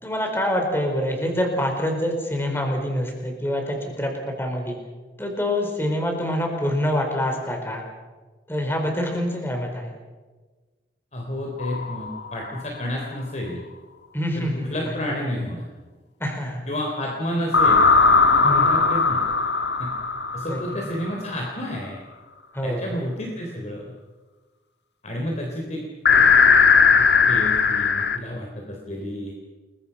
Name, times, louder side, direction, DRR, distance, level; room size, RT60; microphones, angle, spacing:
voice 1, 0.0-4.8 5.2-7.8 8.5-9.9 14.1-14.9 16.2-16.7 18.4-18.8 20.4-20.9 22.5-22.9, equal, 15° left, 2 dB, 4.6 m, -26 dB
voice 2, 11.1-13.6 14.4-15.6 16.7-17.9 18.3-19.3 19.8-19.9 20.3-22.0 22.6-23.9 25.0-26.5 27.0-29.3, equal, 40° left, 0 dB, 3.6 m, -30 dB
sound 1, 11.6-12.4 17.5-21.2 26.0-28.2, left 5 dB, 75° left, 1.5 m, -18 dB
30.0 x 23.0 x 5.8 m, 1.3 s
head